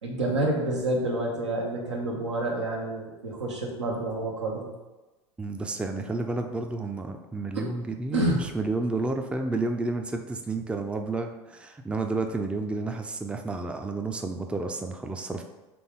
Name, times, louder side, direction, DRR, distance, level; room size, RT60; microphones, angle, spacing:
voice 1, 0.0-4.7 7.5-7.7 8.1-8.4, right 2 dB, 85° right, -1 dB, 1.0 m, -28 dB
voice 2, 5.4-15.4, right 3 dB, 5° right, 4 dB, 0.4 m, -31 dB
4.3 x 3.4 x 3.5 m, 1.1 s
hypercardioid pair, 75°, 15 cm